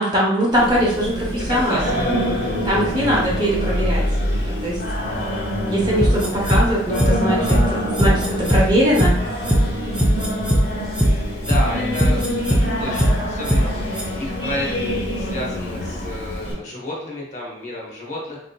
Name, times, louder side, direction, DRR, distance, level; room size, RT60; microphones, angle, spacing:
voice 1, 0.0-1.9 2.6-4.0 4.6-4.8 5.7-9.2, equal, 25° right, -5 dB, 0.8 m, -21 dB
Singing, 0.5-16.5, equal, 65° left, 1.0 m, -25 dB
voice 2, 1.5-1.9 2.4-2.6 11.4-18.4, left 1 dB, 40° left, -3 dB, 0.8 m, -31 dB
sound 1, 6.0-6.6 6.9-7.1 7.4-7.6 7.9-8.6 8.9-9.1 9.4-9.6 9.9-10.6 10.9-11.1 11.4-11.6 11.9-12.6 12.9-13.1 13.4-13.6 13.9-14.0, equal, 5° right, 0.4 m, -17 dB
4.2 x 2.6 x 2.2 m, 0.77 s
head